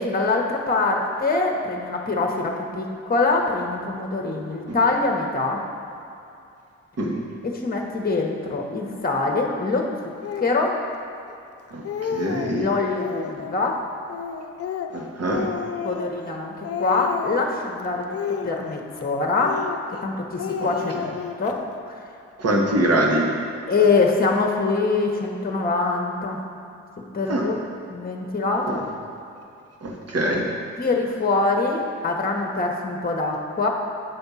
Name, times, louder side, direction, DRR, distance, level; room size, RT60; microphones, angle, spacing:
voice 1, 0.0-5.6 7.4-10.8 12.5-13.8 15.8-18.0 18.4-19.6 19.9-22.1 23.7-26.4 27.1-27.6 27.9-28.8 30.8-33.7, left 3 dB, 30° left, 1 dB, 1.1 m, -24 dB
Speech, 10.2-10.5 11.3-11.4 11.7-12.6 13.0-13.6 14.1-16.4 16.6-17.6 18.1-19.0 19.4-20.1 20.4-21.5, left 7 dB, 50° left, 0.6 m, -31 dB
voice 2, 11.7-12.7 14.9-15.5 20.6-20.7 22.4-23.3 27.2-27.4 29.8-30.5, right 1 dB, 50° right, 0 dB, 1.4 m, -23 dB
8.7 x 3.5 x 5.6 m, 2.6 s
supercardioid pair, 50°, 31 cm